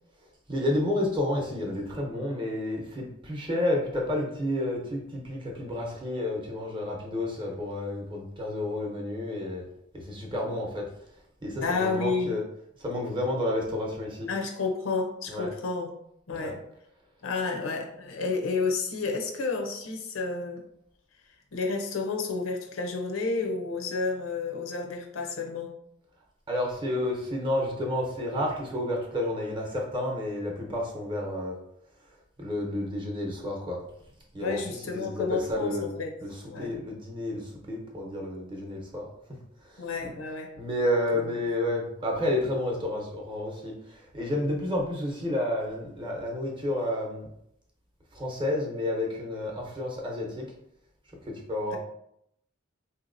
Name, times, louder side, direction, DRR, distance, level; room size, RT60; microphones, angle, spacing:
voice 1, 0.5-9.7 9.9-10.8 11.4-12.4 12.8-14.3 15.3-15.5 16.3-16.5 26.5-31.6 32.4-33.8 34.3-35.9 36.2-39.1 39.6-40.1 40.5-47.3 48.1-50.5 51.5-51.8, left 1 dB, 25° right, 0 dB, 0.8 m, -30 dB
voice 2, 11.6-12.3 14.3-15.9 16.3-16.6 17.2-20.6 21.5-25.7 34.4-36.1 36.5-36.8 39.8-40.5 41.1-41.3, left 4 dB, 85° left, 3 dB, 0.6 m, -30 dB
3.5 x 2.8 x 2.6 m, 0.74 s
head